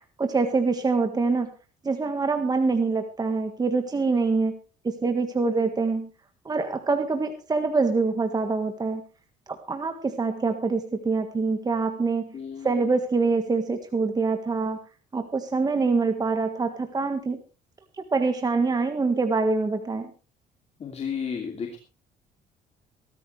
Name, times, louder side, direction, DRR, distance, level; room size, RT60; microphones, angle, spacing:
voice 1, 0.2-1.5 1.8-4.6 4.8-6.1 6.4-9.0 9.5-12.3 12.6-14.8 15.1-17.4 18.0-20.1, right 4 dB, 25° right, 6 dB, 1.5 m, -25 dB
voice 2, 12.3-12.8 20.8-21.8, left 6 dB, 40° left, 3 dB, 2.8 m, -33 dB
18.5 x 13.5 x 3.3 m, 0.34 s
cardioid pair, 110°, 17 cm